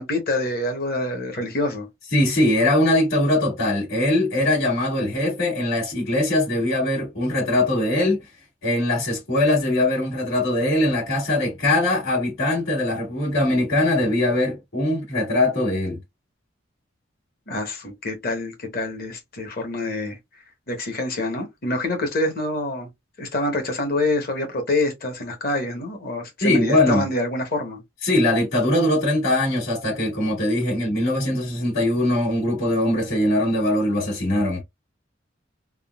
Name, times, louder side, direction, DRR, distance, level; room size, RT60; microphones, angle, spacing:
voice 1, 0.0-1.9 17.5-20.2 20.7-22.9 23.2-27.8, left 2 dB, 45° left, 0.9 m, -26 dB
voice 2, 2.1-8.3 8.6-16.0 26.4-27.1 28.0-34.6, left 1 dB, 85° left, 1.9 m, -21 dB
3.6 x 2.1 x 2.3 m
head